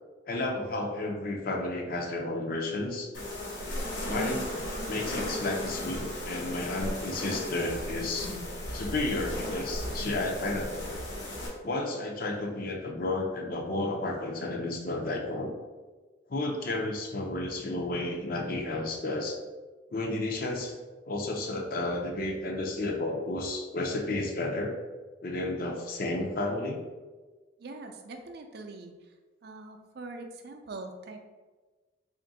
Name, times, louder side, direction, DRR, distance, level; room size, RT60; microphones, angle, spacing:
voice 1, 0.3-3.1 4.1-4.6 4.8-8.3 8.7-11.0 11.6-15.5 16.3-19.4 19.9-20.8 21.0-24.8 25.2-26.8, left 2 dB, 50° left, 2 dB, 0.5 m, -32 dB
sound 1, 3.1-11.5, left 1 dB, 80° left, 1.0 m, -35 dB
voice 2, 27.6-28.9 29.4-31.3, right 3 dB, 60° right, 5 dB, 0.4 m, -43 dB
3.3 x 2.5 x 3.9 m, 1.3 s
head